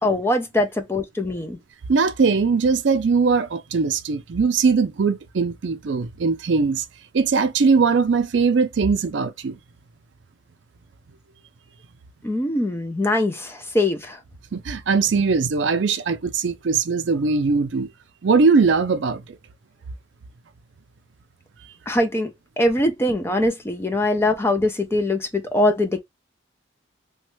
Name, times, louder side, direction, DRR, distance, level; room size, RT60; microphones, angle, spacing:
voice 1, 0.0-1.6 12.2-14.2 21.9-22.3 22.6-26.0, left 1 dB, 10° left, 0.4 m, -22 dB
voice 2, 1.9-6.8 7.1-9.6 14.5-17.9 18.2-19.2, right 4 dB, 65° right, 0.4 m, -20 dB
3.1 x 2.2 x 3.0 m
head